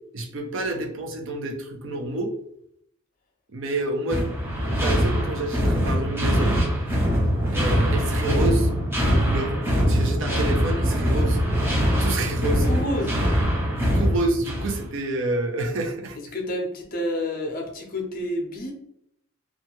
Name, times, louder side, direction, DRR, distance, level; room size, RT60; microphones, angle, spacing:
voice 1, 0.1-2.3 3.5-4.3 4.8-6.6 7.5-8.7 9.0-9.5 9.9-11.4 12.0-12.7 13.9-16.2, right 2 dB, 55° right, 3 dB, 0.5 m, -28 dB
sound 1, 4.1-14.8, equal, 10° right, 0.6 m, -23 dB
voice 2, 12.6-13.2 16.3-18.7, left 1 dB, 40° left, 2 dB, 0.6 m, -29 dB
2.7 x 2.3 x 2.9 m, 0.73 s
head